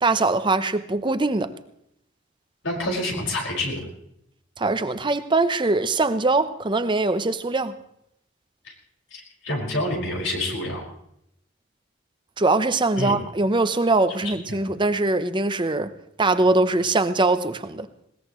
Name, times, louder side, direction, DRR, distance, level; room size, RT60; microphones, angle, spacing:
voice 1, 0.0-1.5 4.6-7.7 12.4-15.9 16.2-17.9, right 2 dB, 25° right, 0.7 m, -22 dB
voice 2, 2.6-3.9 8.6-8.7 9.1-10.8 13.0-13.2 14.2-14.6, left 1 dB, 80° left, 5.4 m, -28 dB
20.5 x 19.0 x 3.1 m
head